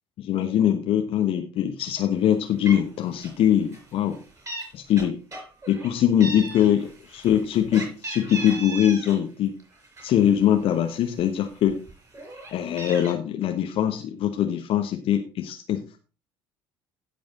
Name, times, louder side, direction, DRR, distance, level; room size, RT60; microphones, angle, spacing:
voice 1, 0.2-4.2 4.7-5.2 5.7-9.5 10.0-11.8 12.5-16.0, left 10 dB, 50° left, 5 dB, 1.0 m, -22 dB
Meow, 2.3-2.4 2.7-2.9 3.2-3.5 3.7-4.7 5.0-5.9 6.2-9.2 9.6-10.7 11.2-11.3 11.6-13.1, right 2 dB, 25° right, 4.9 m, -37 dB
16.0 x 5.4 x 3.8 m, 0.34 s
figure-of-eight pair, 55°, 13 cm